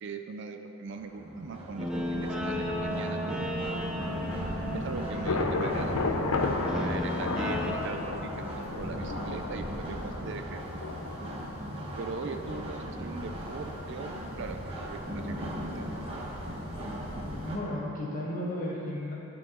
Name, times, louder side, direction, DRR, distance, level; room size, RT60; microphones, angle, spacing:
voice 1, 0.0-4.0 4.7-6.4 6.7-10.8 12.0-15.9, right 4 dB, 55° right, 6 dB, 0.4 m, -40 dB
sound 1, 0.9-17.6, equal, 25° right, 1.1 m, -38 dB
Guitar, 1.8-7.7, equal, 5° right, 0.6 m, -34 dB
Thunder / Rain, 4.0-17.6, left 3 dB, 75° left, 0.6 m, -36 dB
voice 2, 17.4-19.1, left 1 dB, 35° left, -4 dB, 1.4 m, -34 dB
11.5 x 4.6 x 4.4 m, 2.9 s
head